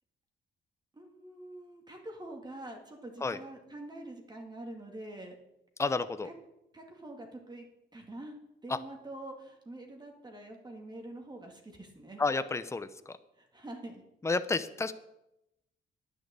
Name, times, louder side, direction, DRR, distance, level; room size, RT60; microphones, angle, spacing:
voice 1, 0.9-5.4 6.2-6.3 6.7-8.4 8.6-12.2 13.4-14.0, right 1 dB, 20° right, 2 dB, 2.3 m, -45 dB
voice 2, 5.8-6.3 8.7-8.8 12.2-13.2 14.2-14.9, left 3 dB, 15° left, 12 dB, 0.7 m, -31 dB
10.5 x 6.7 x 8.3 m, 0.87 s
cardioid pair, 90°, 20 cm